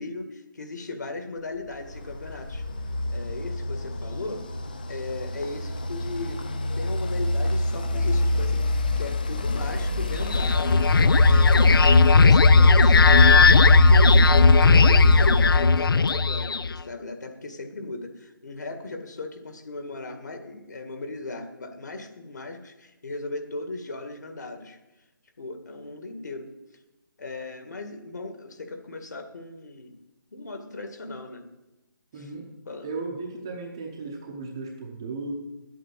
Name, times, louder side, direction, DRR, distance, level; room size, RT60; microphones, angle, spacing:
voice 1, 0.0-2.6 3.1-4.5 4.9-6.5 6.7-10.9 11.2-24.8 25.4-26.5 27.2-30.0 30.3-31.5 32.2-32.3 32.7-32.9, left 3 dB, 55° left, 6 dB, 2.0 m, -37 dB
sound 1, 1.9-16.3, left 2 dB, 25° left, 0.6 m, -22 dB
sound 2, 10.2-16.8, left 4 dB, 85° left, 0.5 m, -18 dB
voice 2, 32.1-32.5 32.8-35.3, right 3 dB, 10° right, 0 dB, 0.7 m, -35 dB
11.0 x 8.5 x 7.5 m, 0.98 s
hypercardioid pair, 180°, 11 cm